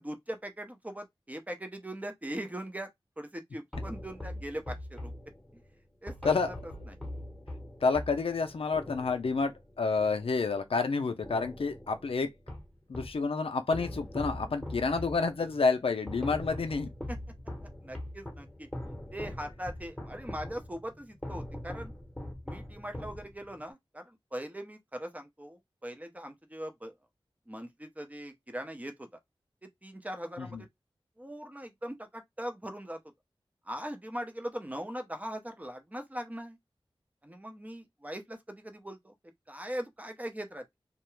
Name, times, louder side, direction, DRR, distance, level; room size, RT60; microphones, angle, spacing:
voice 1, 0.0-2.9 3.2-5.1 6.0-7.0 14.7-14.8 17.1-17.2 17.8-18.7 19.1-21.9 22.5-26.9 27.5-29.1 29.6-30.7 31.2-33.0 33.7-36.6 37.2-39.1 39.5-40.6, equal, 15° right, 0.6 m, -40 dB
sound 1, 3.7-10.8 11.2-13.2 13.7-23.6, left 1 dB, 5° left, 1.0 m, -42 dB
voice 2, 7.8-12.3 12.9-16.9 30.4-30.6, left 4 dB, 70° left, 0.5 m, -29 dB
2.4 x 2.1 x 3.0 m
wide cardioid pair, 45°, 10 cm